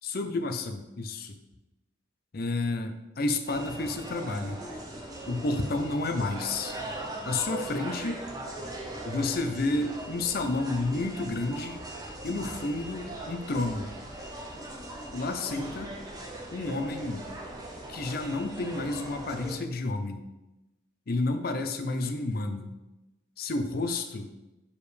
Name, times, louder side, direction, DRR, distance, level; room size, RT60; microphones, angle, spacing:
voice 1, 0.0-1.4 2.3-4.6 5.3-6.8 7.2-8.2 9.1-11.8 12.2-13.9 15.1-15.9 16.5-17.3 17.9-20.3 21.1-22.7 23.4-24.3, left 2 dB, 50° left, 6 dB, 0.5 m, -30 dB
sound 1, 3.5-19.6, right 1 dB, 20° right, 0.8 m, -40 dB
6.7 x 4.8 x 3.3 m, 0.99 s
head